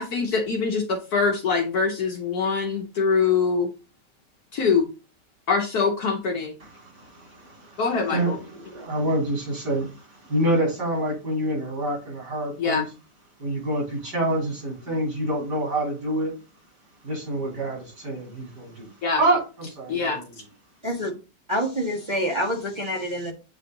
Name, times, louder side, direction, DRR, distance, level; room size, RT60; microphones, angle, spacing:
voice 1, 0.0-3.7 4.5-4.9 5.5-6.5 7.8-8.4 12.6-12.8 19.0-19.2 19.9-20.2, left 5 dB, 65° left, 1.5 m, -23 dB
voice 2, 6.6-7.8 8.1-12.8 13.4-16.3 17.0-18.9 19.2-20.3, right 1 dB, 75° right, 4.3 m, -27 dB
voice 3, 21.5-23.3, equal, 20° right, 1.5 m, -26 dB
8.5 x 3.3 x 3.9 m
omnidirectional pair, 1.8 m